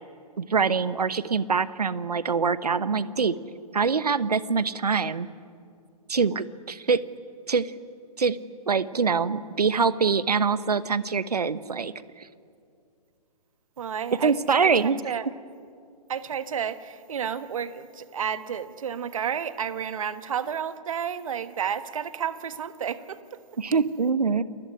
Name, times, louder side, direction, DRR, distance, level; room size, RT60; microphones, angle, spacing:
voice 1, 0.4-3.4 3.7-5.3 6.1-7.0 7.5-7.7 8.2-8.4 8.7-12.3 14.1-15.0 23.6-24.4, right 5 dB, 70° right, 16 dB, 1.1 m, -24 dB
voice 2, 13.8-15.3 16.1-23.4, right 8 dB, 55° right, 12 dB, 1.4 m, -31 dB
28.5 x 20.5 x 9.8 m, 2.4 s
figure-of-eight pair, 125°, 21 cm